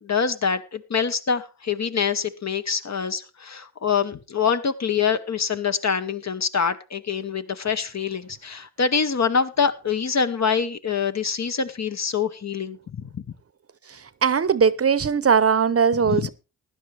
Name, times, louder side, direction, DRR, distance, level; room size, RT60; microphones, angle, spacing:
voice 1, 0.0-13.2 16.1-16.3, left 6 dB, 50° left, 1.0 m, -25 dB
voice 2, 14.2-16.3, right 6 dB, 40° right, 0.7 m, -19 dB
15.5 x 10.5 x 3.3 m
cardioid pair, 55°, 35 cm